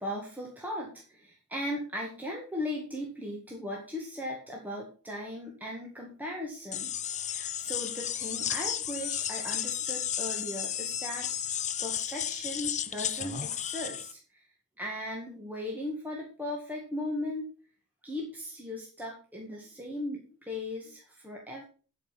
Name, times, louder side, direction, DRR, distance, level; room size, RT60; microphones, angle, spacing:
voice 1, 0.0-6.9 7.3-14.2 14.8-17.5 18.0-21.6, left 1 dB, 10° right, -2 dB, 1.9 m, -38 dB
sound 1, 6.7-14.1, left 10 dB, 35° left, 0.7 m, -33 dB
12.5 x 5.4 x 5.9 m, 0.38 s
head